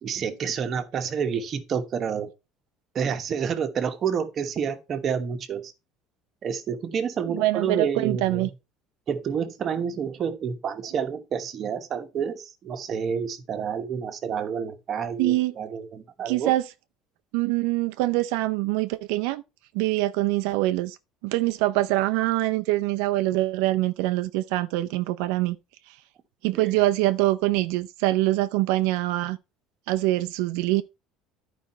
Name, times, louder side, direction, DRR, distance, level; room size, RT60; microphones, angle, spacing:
voice 1, 0.0-2.3 2.9-5.7 6.4-8.5 9.1-16.5 26.5-26.7, right 7 dB, 30° right, 1.1 m, -29 dB
voice 2, 7.3-8.5 15.2-15.5 16.3-16.6 17.3-19.4 19.7-21.0 21.2-25.6 25.9-26.0 26.4-29.4 29.9-30.8, right 17 dB, 80° right, 0.5 m, -24 dB
11.5 x 5.0 x 4.3 m
cardioid pair, 175°, 0 cm